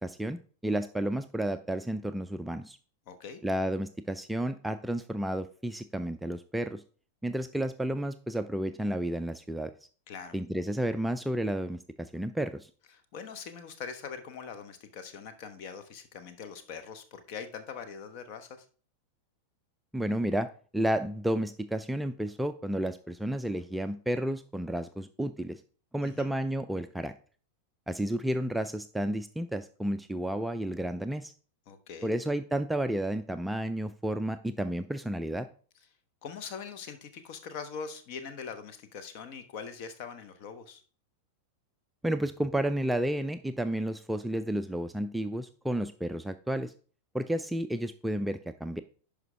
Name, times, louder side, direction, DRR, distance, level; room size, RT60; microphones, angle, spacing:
voice 1, 0.0-2.8 3.4-6.8 7.2-9.7 10.3-12.7 19.9-25.6 25.9-27.1 27.9-31.3 32.0-35.5 42.0-46.7 47.1-48.8, right 1 dB, 5° right, 9 dB, 0.4 m, -31 dB
voice 2, 3.1-3.4 10.1-10.4 12.9-18.7 26.0-26.3 31.7-32.1 36.2-40.8, left 6 dB, 45° left, 10 dB, 1.0 m, -42 dB
11.0 x 5.0 x 3.3 m, 0.41 s
figure-of-eight pair, 90°, 0 cm